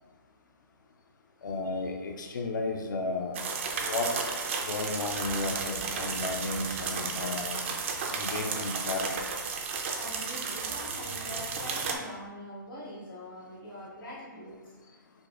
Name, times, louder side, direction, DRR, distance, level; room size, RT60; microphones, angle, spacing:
voice 1, 1.4-3.4 3.7-4.1 4.6-7.6 8.1-9.2, left 3 dB, 60° left, 2 dB, 0.4 m, -33 dB
sound 1, 3.3-12.0, right 5 dB, 35° right, 0.4 m, -33 dB
voice 2, 9.9-14.7, left 1 dB, 85° left, -8 dB, 1.4 m, -43 dB
5.1 x 2.2 x 2.4 m, 1.3 s
hypercardioid pair, 155°, 11 cm